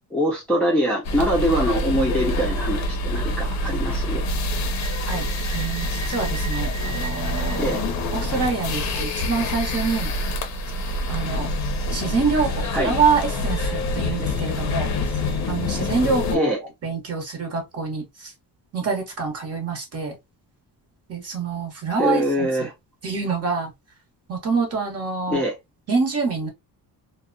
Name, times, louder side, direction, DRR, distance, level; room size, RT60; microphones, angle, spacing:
voice 1, 0.1-4.2 7.6-7.8 12.7-12.9 16.3-16.6 22.0-22.7 25.3-25.5, equal, 5° left, 0.4 m, -23 dB
sound 1, 1.0-16.4, left 1 dB, 45° left, 0.6 m, -26 dB
voice 2, 5.1-7.8 8.1-10.1 11.1-11.5 11.9-14.9 15.5-16.5 16.8-18.3 18.7-20.2 21.1-22.7 23.0-23.7 24.3-25.4 25.9-26.5, right 5 dB, 40° right, 0.9 m, -26 dB
2.7 x 2.1 x 2.5 m
cardioid pair, 170°, 39 cm